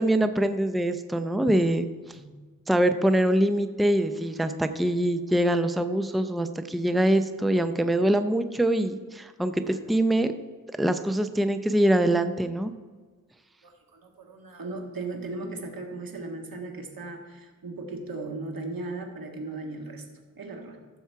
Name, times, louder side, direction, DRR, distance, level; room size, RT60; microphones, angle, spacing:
voice 1, 0.0-1.9 2.7-10.3 10.8-12.7, right 1 dB, ahead, 9 dB, 0.6 m, -24 dB
voice 2, 13.6-20.0 20.4-20.8, right 3 dB, 85° right, 3 dB, 1.8 m, -37 dB
15.0 x 7.1 x 4.6 m, 1.4 s
wide cardioid pair, 80°, 34 cm